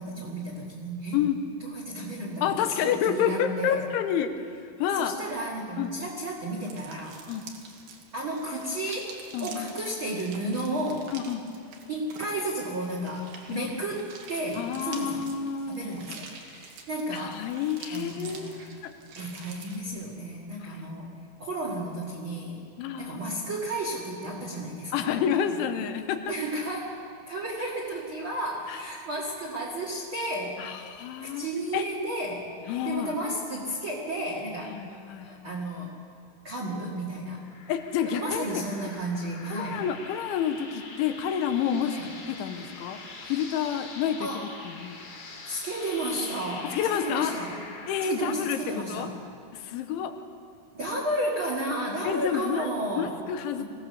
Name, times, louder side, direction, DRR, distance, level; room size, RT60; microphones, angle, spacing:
voice 1, 0.0-1.2 1.6-3.9 5.0-7.2 8.1-11.1 11.9-15.3 15.7-16.3 16.9-17.4 17.9-18.7 19.1-21.1 21.4-22.6 23.0-25.1 25.5-25.6 26.3-30.6 31.2-32.5 32.8-34.8 35.2-35.9 36.4-37.4 38.0-39.8 41.9-42.1 44.2-44.4 45.4-47.6 48.0-49.1 50.7-53.1 53.6-53.7, right 1 dB, 40° right, -3 dB, 1.9 m, -33 dB
voice 2, 2.4-4.3 4.8-5.2 5.8-5.9 7.3-7.4 9.3-9.7 11.1-11.4 13.5-13.7 14.6-16.1 16.4-16.7 17.1-18.5 20.8-20.9 22.8-23.2 24.9-26.3 28.7-28.8 30.6-31.5 31.7-31.8 32.7-33.1 34.7-35.5 37.7-38.6 39.5-42.0 42.3-44.3 44.7-45.0 46.7-47.3 47.9-49.1 49.5-50.2 52.0-52.7 53.0-53.6, left 8 dB, 90° left, 8 dB, 3.4 m, -29 dB
sound 1, 6.5-19.8, right 5 dB, 60° right, 3.1 m, -47 dB
sound 2, 37.4-48.1, left 3 dB, 40° left, 2.7 m, -44 dB
23.5 x 16.5 x 6.8 m, 2.3 s
omnidirectional pair, 5.4 m